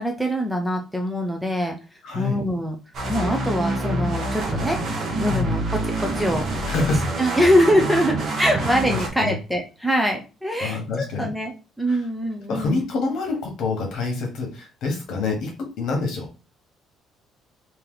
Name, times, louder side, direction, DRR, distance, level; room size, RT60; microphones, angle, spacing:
voice 1, 0.0-1.8 2.1-2.8 3.1-4.8 5.2-6.5 7.2-12.8, equal, ahead, 2 dB, 0.5 m, -23 dB
voice 2, 2.0-2.4 5.2-5.7 6.7-7.2 8.6-9.4 10.6-11.3 11.9-12.0 12.5-16.3, left 3 dB, 60° left, 2 dB, 1.5 m, -27 dB
sound 1, 2.9-9.1, right 2 dB, 40° right, 1.0 m, -26 dB
3.3 x 2.8 x 3.8 m, 0.31 s
cardioid pair, 165°, 0 cm